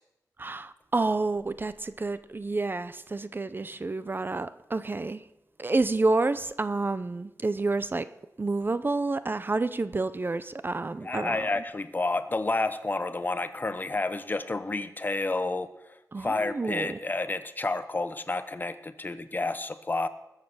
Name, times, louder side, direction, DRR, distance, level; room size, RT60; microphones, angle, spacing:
voice 1, 0.4-5.2 5.6-8.1 8.4-11.5 16.1-17.0, right 3 dB, 35° right, 14 dB, 0.6 m, -29 dB
voice 2, 11.0-20.1, left 2 dB, 30° left, 12 dB, 0.9 m, -30 dB
20.0 x 7.6 x 6.3 m, 0.90 s
wide cardioid pair, 95°, 6 cm